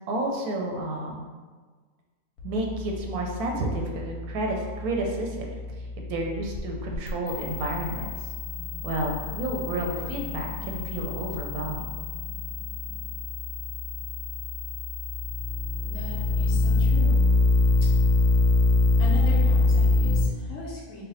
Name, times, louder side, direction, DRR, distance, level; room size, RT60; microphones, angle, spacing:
voice 1, 0.1-1.2 2.4-5.5 6.0-8.1 8.8-11.9, right 1 dB, 85° right, 1 dB, 1.1 m, -30 dB
sound 1, 2.4-20.3, left 3 dB, 90° left, 1.2 m, -26 dB
voice 2, 15.9-17.2 19.0-21.1, left 2 dB, 65° left, -6 dB, 1.0 m, -38 dB
3.2 x 2.1 x 4.0 m, 1.4 s
omnidirectional pair, 1.5 m